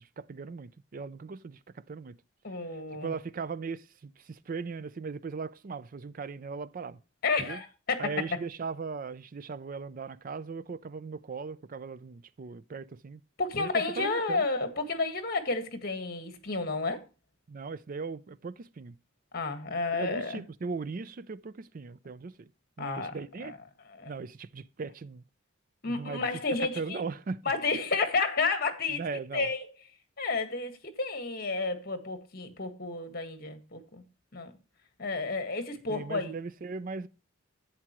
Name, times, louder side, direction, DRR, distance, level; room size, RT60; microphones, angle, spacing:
voice 1, 0.0-2.2 3.0-7.0 7.4-7.6 8.0-13.2 13.6-14.4 17.5-19.0 19.9-22.5 22.8-23.5 24.1-25.2 25.9-26.3 26.6-27.4 28.9-29.5 35.9-37.1, right 4 dB, 45° right, 0.4 m, -38 dB
voice 2, 2.4-3.1 7.2-8.4 13.4-17.0 19.3-20.4 22.8-23.1 23.4-23.6 23.9-24.1 25.8-27.0 27.4-29.0 29.3-29.7 30.2-34.0 34.3-34.5 35.0-36.3, left 3 dB, 50° left, 1.7 m, -31 dB
11.0 x 8.8 x 3.0 m
head